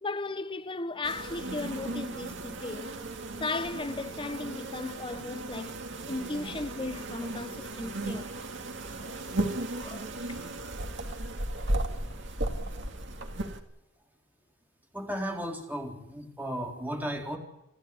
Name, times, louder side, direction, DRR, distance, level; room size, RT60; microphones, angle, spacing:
voice 1, 0.0-3.0 3.4-5.8 6.1-8.5 9.0-9.2 9.7-10.4, left 3 dB, 25° left, 0.8 m, -36 dB
sound 1, 1.0-13.6, right 1 dB, 65° right, 2.4 m, -35 dB
voice 2, 14.9-17.4, equal, 10° right, 4.0 m, -35 dB
29.0 x 11.0 x 9.6 m
head